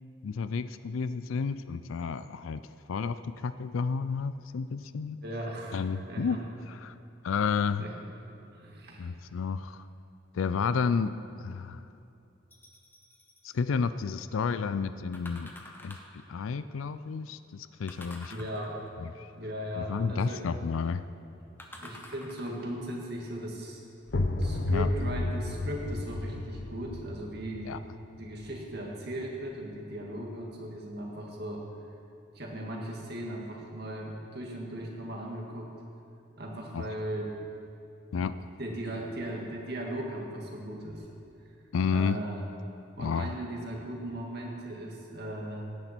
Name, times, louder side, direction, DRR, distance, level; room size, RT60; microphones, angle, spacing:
voice 1, 0.2-2.6 2.9-5.2 5.7-6.4 6.7-6.9 7.2-7.8 9.0-9.8 10.3-11.1 11.4-11.8 13.4-15.5 15.8-18.3 19.0-19.3 19.8-21.0 24.7-24.9 27.7-27.8 36.7-36.8 38.1-38.5 41.7-42.2 43.0-43.3, left 5 dB, 85° left, 13 dB, 0.4 m, -31 dB
voice 2, 5.2-6.4 7.8-7.9 8.5-9.1 18.3-18.8 19.3-20.5 21.8-23.8 24.4-27.7 28.2-31.6 32.3-35.7 36.4-37.4 38.6-41.1 41.9-42.4 43.0-45.6, right 1 dB, 50° right, -1 dB, 2.1 m, -38 dB
sound 1, 12.5-13.4 15.1-16.2 17.9-19.0 21.6-22.7 23.4-23.5, left 1 dB, 10° left, 1.0 m, -48 dB
sound 2, 24.1-29.6, left 2 dB, 60° left, 0.7 m, -33 dB
17.0 x 10.0 x 4.4 m, 2.7 s
head